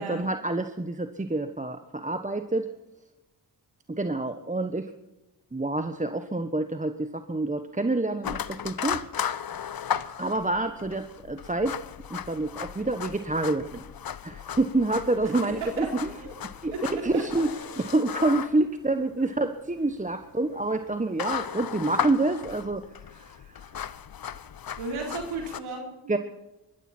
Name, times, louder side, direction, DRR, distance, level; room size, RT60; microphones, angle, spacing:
voice 1, 0.0-2.7 3.9-4.9 5.5-9.0 10.2-11.8 12.1-13.8 14.2-16.1 16.6-22.8 23.1-23.7 26.1-26.2, right 2 dB, 15° right, 8 dB, 1.2 m, -27 dB
sound 1, 8.2-25.6, left 9 dB, 45° left, 0.9 m, -36 dB
voice 2, 15.4-15.9 16.2-16.3 16.7-16.8 17.1-17.2 24.8-26.2, right 3 dB, 85° right, 1 dB, 4.2 m, -34 dB
20.5 x 14.0 x 4.4 m, 1.0 s
supercardioid pair, 45°, 47 cm